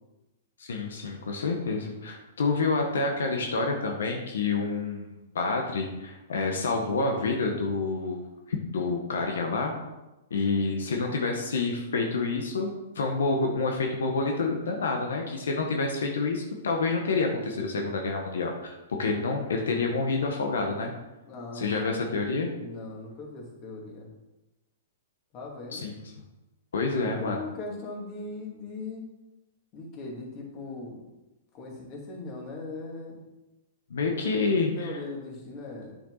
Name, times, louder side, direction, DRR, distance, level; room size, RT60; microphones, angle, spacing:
voice 1, 0.6-8.2 8.5-9.7 10.3-20.9 21.5-22.5 25.7-26.0 26.7-27.4 33.9-35.0, left 3 dB, 85° left, 2 dB, 1.5 m, -28 dB
voice 2, 21.2-22.0 22.6-24.1 25.3-25.9 26.7-29.1 29.7-30.9 31.5-33.2 34.8-35.9, left 3 dB, 35° left, -1 dB, 2.8 m, -39 dB
9.6 x 6.7 x 4.2 m, 1.0 s
hypercardioid pair, 145°, 0 cm